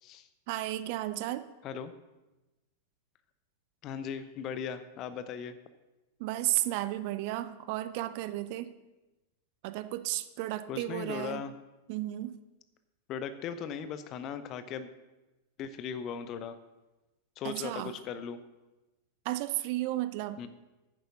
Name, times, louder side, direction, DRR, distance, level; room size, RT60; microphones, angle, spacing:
voice 1, 0.5-1.4 6.2-8.7 9.6-11.4 11.9-12.4 17.4-17.9 19.2-20.4, right 15 dB, 45° right, 13 dB, 0.6 m, -33 dB
voice 2, 3.8-5.6 10.7-11.5 13.1-14.9 15.6-16.6 17.4-18.4 20.4-20.5, left 7 dB, 35° left, 13 dB, 0.8 m, -38 dB
9.6 x 7.8 x 5.8 m, 1.1 s
figure-of-eight pair, 90°, 0 cm